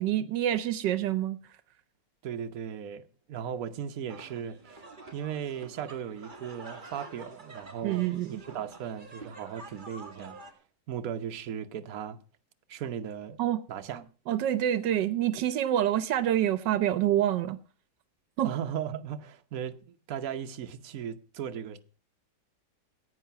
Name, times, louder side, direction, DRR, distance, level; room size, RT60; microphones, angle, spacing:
voice 1, 0.0-1.4 7.8-8.3 13.4-13.6 14.3-17.6 18.4-18.5, right 11 dB, 80° right, 1.4 m, -27 dB
voice 2, 2.2-4.8 5.1-10.4 10.9-12.2 12.7-13.4 13.7-14.1 18.4-21.8, right 8 dB, 55° right, 1.3 m, -37 dB
sound 1, 4.1-10.5, right 3 dB, 30° right, 1.9 m, -48 dB
16.0 x 8.9 x 5.8 m
omnidirectional pair, 1.9 m